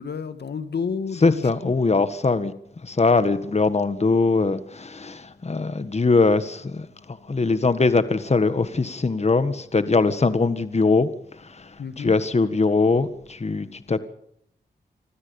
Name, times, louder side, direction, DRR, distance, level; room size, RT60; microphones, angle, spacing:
voice 1, 0.0-1.7 11.8-12.1, left 6 dB, 70° left, 1.9 m, -30 dB
voice 2, 1.2-2.5 2.8-11.1 11.4-14.0, left 3 dB, 35° left, 1.6 m, -22 dB
26.0 x 14.5 x 7.1 m
cardioid pair, 55°, 18 cm